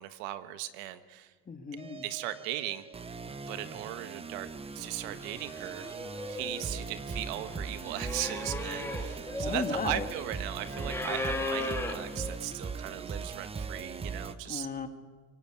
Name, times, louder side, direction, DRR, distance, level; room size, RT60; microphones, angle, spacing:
voice 1, 0.0-1.3 2.0-2.8 3.5-4.5 4.7-5.9 6.3-14.7, right 14 dB, 75° right, 11 dB, 1.4 m, -38 dB
voice 2, 1.5-2.1 9.4-10.1 14.5-14.9, left 5 dB, 20° left, 7 dB, 1.8 m, -35 dB
sound 1, 1.8-14.3, right 4 dB, 15° right, 0.8 m, -40 dB
sound 2, 4.8-5.0 5.2-12.4, left 2 dB, 5° left, 2.2 m, -37 dB
24.5 x 18.5 x 8.9 m, 1.5 s
supercardioid pair, 120°, 39 cm